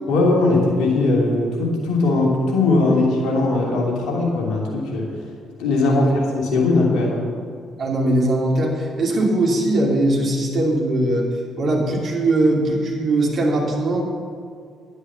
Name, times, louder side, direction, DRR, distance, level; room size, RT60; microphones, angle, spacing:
voice 1, 0.1-5.1 5.6-7.2, left 2 dB, 60° left, -2 dB, 3.0 m, -19 dB
voice 2, 7.8-11.3 11.6-14.0, right 1 dB, 45° right, -2 dB, 3.0 m, -20 dB
11.0 x 9.8 x 7.2 m, 2.2 s
figure-of-eight pair, 45°, 0 cm